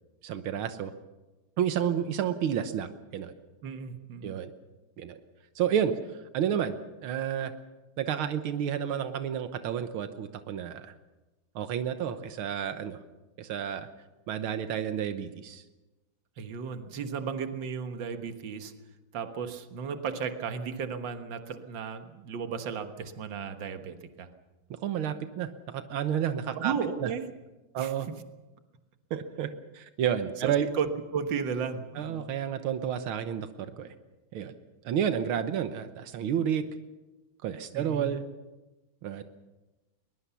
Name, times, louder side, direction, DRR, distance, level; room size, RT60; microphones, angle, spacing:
voice 1, 0.2-0.9 1.6-3.3 4.2-4.5 5.0-5.2 5.6-5.9 6.3-7.5 8.0-10.9 11.6-13.0 13.4-13.9 14.3-15.6 24.7-27.1 27.7-28.1 29.1-30.7 32.0-33.9 34.3-34.5 34.8-36.6 37.4-38.2 39.0-39.2, right 9 dB, 90° right, 9 dB, 1.9 m, -30 dB
voice 2, 3.6-4.4 16.4-18.7 19.1-24.3 26.6-27.3 27.8-27.9 30.4-32.3 37.7-38.1, right 6 dB, 65° right, 8 dB, 2.1 m, -34 dB
21.5 x 21.5 x 7.0 m, 1.1 s
omnidirectional pair, 2.2 m